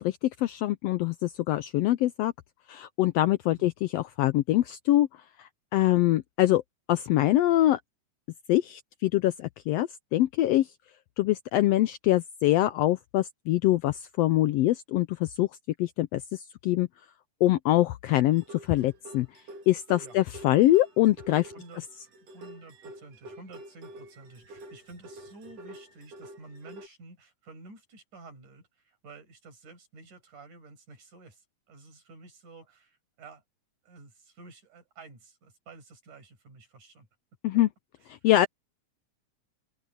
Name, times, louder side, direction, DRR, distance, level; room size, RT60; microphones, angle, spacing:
voice 1, 0.0-2.3 2.7-5.1 5.4-6.6 6.9-7.8 8.5-10.7 11.2-15.5 15.8-16.9 17.4-19.3 19.7-21.5 37.4-37.7 38.1-38.5, left 15 dB, 80° left, 1.4 m, -24 dB
sound 1, 18.3-26.9, right 1 dB, 55° right, 3.2 m, -48 dB
voice 2, 21.5-21.9 22.3-33.4 33.8-37.1 38.0-38.2, right 3 dB, 85° right, 7.7 m, -51 dB
open air
omnidirectional pair, 3.4 m